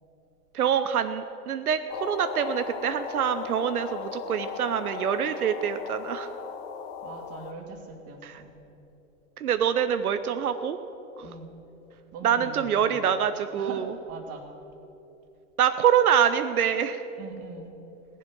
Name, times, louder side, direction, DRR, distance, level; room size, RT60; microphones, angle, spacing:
voice 1, 0.5-6.3 8.2-8.4 9.4-10.8 11.2-11.3 12.2-13.9 15.6-17.0, right 8 dB, 90° right, 10 dB, 0.7 m, -25 dB
sound 1, 1.9-7.5, left 7 dB, 40° left, 1.2 m, -37 dB
voice 2, 7.0-8.6 11.2-11.5 12.1-13.0 13.5-14.4 17.2-17.7, right 4 dB, 35° right, 4 dB, 2.2 m, -41 dB
16.0 x 11.0 x 6.1 m, 3.0 s
hypercardioid pair, 115°, 43 cm